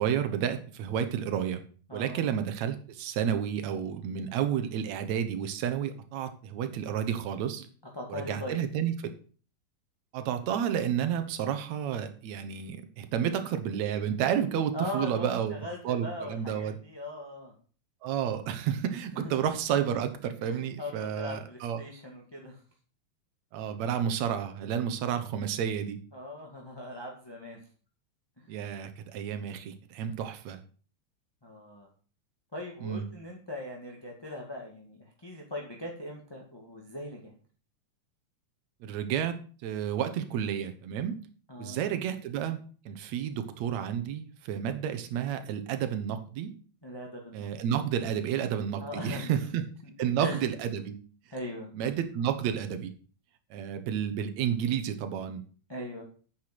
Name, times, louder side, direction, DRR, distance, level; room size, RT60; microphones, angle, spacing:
voice 1, 0.0-1.6 1.9-7.7 8.1-8.9 10.1-15.6 15.8-16.8 18.0-21.8 23.5-26.0 28.5-30.6 32.8-33.0 38.8-41.2 41.6-46.5 47.3-49.6 50.0-51.0 51.7-52.9 53.5-55.4, right 9 dB, 70° right, 9 dB, 2.3 m, -31 dB
voice 2, 1.9-2.3 7.9-8.6 13.2-13.4 14.7-17.5 19.1-19.3 20.5-22.6 26.1-27.6 28.4-28.5 31.4-31.9 32.5-37.3 41.5-41.9 46.8-47.5 48.8-49.3 50.2-50.4 51.3-51.7 55.7-56.0, left 1 dB, 10° left, -1 dB, 1.3 m, -40 dB
9.3 x 6.7 x 6.0 m, 0.41 s
omnidirectional pair, 3.5 m